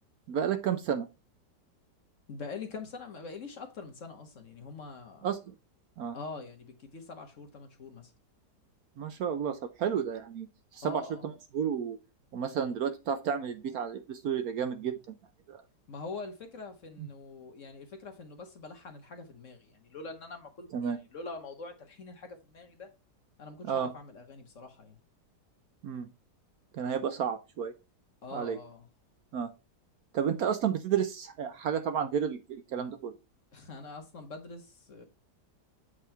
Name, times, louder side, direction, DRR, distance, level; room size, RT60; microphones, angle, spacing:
voice 1, 0.3-1.1 5.2-5.4 6.0-6.2 9.0-10.5 10.7-12.0 12.3-15.2 15.5-15.6 17.0-17.1 20.7-21.0 23.6-23.9 25.8-26.1 26.7-27.7 28.3-28.6 29.3-29.5 30.1-33.1, right 8 dB, 65° right, 1.0 m, -31 dB
voice 2, 2.3-5.3 6.1-8.1 10.8-11.3 15.9-22.9 23.4-25.0 28.2-28.9 33.5-35.1, left 4 dB, 50° left, 1.2 m, -44 dB
7.7 x 3.7 x 4.4 m
omnidirectional pair, 1.9 m